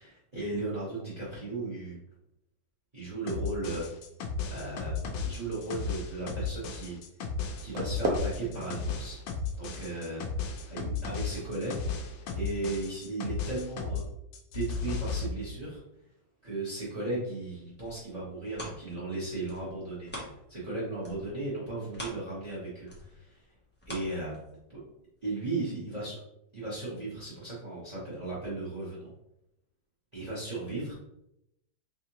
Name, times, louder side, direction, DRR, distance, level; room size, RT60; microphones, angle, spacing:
voice 1, 0.0-2.0 2.9-3.9 4.5-7.0 7.6-9.2 9.6-10.2 10.7-14.0 14.5-15.8 16.4-23.4 23.9-24.3 24.7-24.8 25.2-26.2 26.5-29.1 30.1-30.9, right 2 dB, 25° right, -6 dB, 0.9 m, -36 dB
sound 1, 3.3-14.1 14.3-15.3, left 5 dB, 85° left, 1.4 m, -34 dB
sound 2, 7.5-13.3, right 2 dB, 70° right, 0.8 m, -39 dB
sound 3, 17.5-20.7 21.0-24.8 25.3-25.4, left 1 dB, 10° left, 0.5 m, -45 dB
3.6 x 3.2 x 2.9 m, 0.82 s
omnidirectional pair, 2.1 m